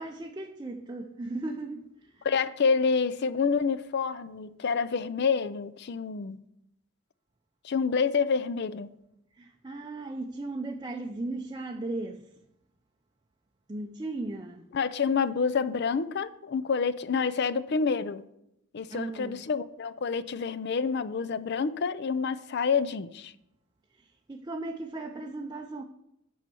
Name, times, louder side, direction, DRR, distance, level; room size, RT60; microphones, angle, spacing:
voice 1, 0.0-2.3 9.4-12.3 13.7-14.7 18.9-19.4 23.9-25.8, right 2 dB, 20° right, 0.5 m, -37 dB
voice 2, 2.2-6.4 7.6-8.9 14.7-18.2 18.7-23.3, left 5 dB, 55° left, 0.5 m, -28 dB
9.2 x 5.6 x 6.8 m
head